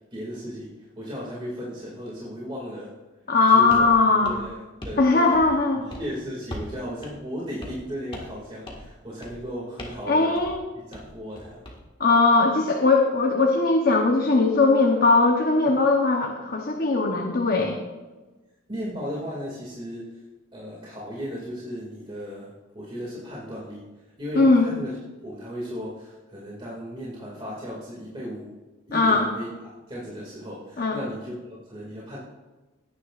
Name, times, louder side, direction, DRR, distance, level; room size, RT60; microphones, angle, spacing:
voice 1, 0.1-2.9 3.5-5.3 5.7-10.3 10.7-11.6 18.7-20.2 20.5-23.9 24.2-24.9 25.2-28.5 28.9-29.5 29.9-32.2, equal, 25° right, -6 dB, 2.3 m, -36 dB
voice 2, 3.3-4.4 5.0-5.9 10.1-10.7 12.0-17.8 24.4-24.7 28.9-29.3 30.8-31.0, left 3 dB, 50° left, 0 dB, 1.0 m, -20 dB
sound 1, 3.7-3.9 4.2-5.0 5.3-5.6 5.9-6.1 6.5-6.8 7.0-7.1 7.6-7.9 8.1-8.4 8.7-8.9 9.2-9.4 9.8-10.1 10.4-10.6 10.9-11.8, left 1 dB, 25° left, 1.8 m, -39 dB
17.5 x 9.7 x 2.5 m, 1.2 s
head